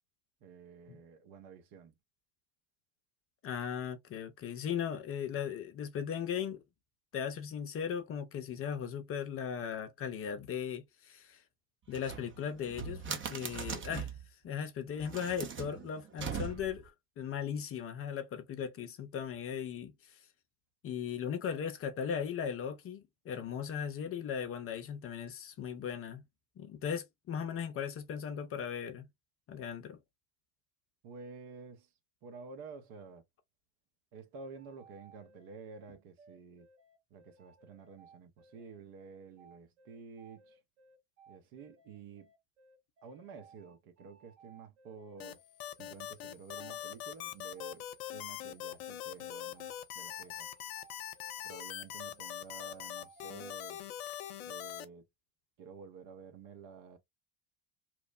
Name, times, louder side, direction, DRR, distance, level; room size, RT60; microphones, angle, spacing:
voice 1, 0.4-1.9 31.0-31.9 32.2-33.2 34.1-36.7 37.1-40.6 41.3-42.3 43.0-45.4 45.8-47.8 48.1-49.7 49.9-50.5 51.4-53.8 54.5-55.0 55.6-57.0, right 5 dB, 55° right, 0.9 m, -51 dB
voice 2, 3.4-6.6 7.1-11.4 11.9-14.1 14.4-20.2 20.8-26.2 26.6-29.1 29.5-30.0, left 8 dB, 30° left, 0.6 m, -38 dB
sound 1, 11.9-14.3 14.9-16.9, right 6 dB, 25° right, 0.7 m, -41 dB
sound 2, 34.4-53.8, right 3 dB, 75° right, 1.5 m, -62 dB
sound 3, 45.2-54.8, left 12 dB, 70° left, 0.6 m, -42 dB
2.9 x 2.0 x 2.4 m
hypercardioid pair, 75°, 44 cm